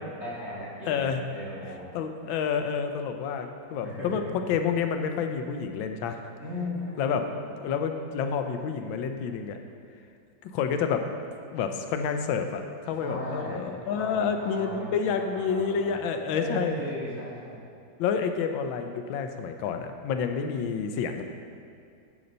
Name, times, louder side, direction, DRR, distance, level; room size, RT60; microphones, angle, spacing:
voice 1, 0.0-1.9 3.8-4.1 4.4-4.5 6.4-7.3 13.0-13.7 13.9-15.9 16.3-17.6, left 1 dB, 35° right, -10 dB, 2.1 m, -36 dB
voice 2, 0.9-1.2 1.6-4.2 4.5-6.2 7.0-7.3 7.6-9.6 10.5-11.1 11.5-16.7 18.0-21.2, left 6 dB, 90° left, 6 dB, 1.4 m, -29 dB
11.0 x 4.0 x 5.3 m, 2.4 s
omnidirectional pair, 2.1 m